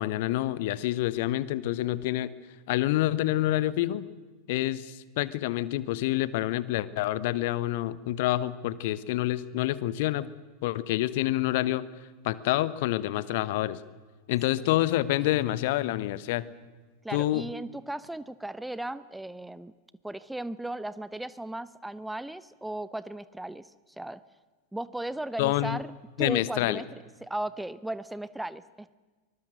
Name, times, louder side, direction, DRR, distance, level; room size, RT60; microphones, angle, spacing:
voice 1, 0.0-2.3 2.7-4.1 4.5-10.3 10.6-11.9 12.2-13.8 14.3-16.4 17.1-17.4 25.4-25.8 26.2-26.8, left 15 dB, 50° left, 17 dB, 1.0 m, -27 dB
voice 2, 17.0-19.7 20.0-24.2 24.7-25.9 26.2-26.8 27.2-28.9, right 1 dB, 5° right, 17 dB, 0.6 m, -36 dB
24.0 x 21.0 x 6.6 m, 1.3 s
figure-of-eight pair, 90°, 0 cm